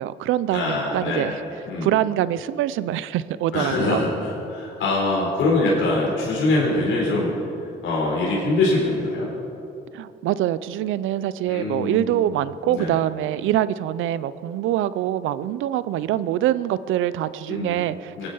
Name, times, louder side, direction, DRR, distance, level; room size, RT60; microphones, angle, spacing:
voice 1, 0.0-1.4 1.8-4.0 9.9-18.3, right 12 dB, 85° right, 16 dB, 0.6 m, -24 dB
voice 2, 0.5-1.4 1.7-1.9 3.5-7.4 7.8-9.3 11.5-12.3 12.6-13.0 17.5-17.8 18.2-18.3, left 2 dB, 75° left, -5 dB, 4.0 m, -23 dB
22.5 x 9.9 x 5.5 m, 2.7 s
cardioid pair, 90°, 20 cm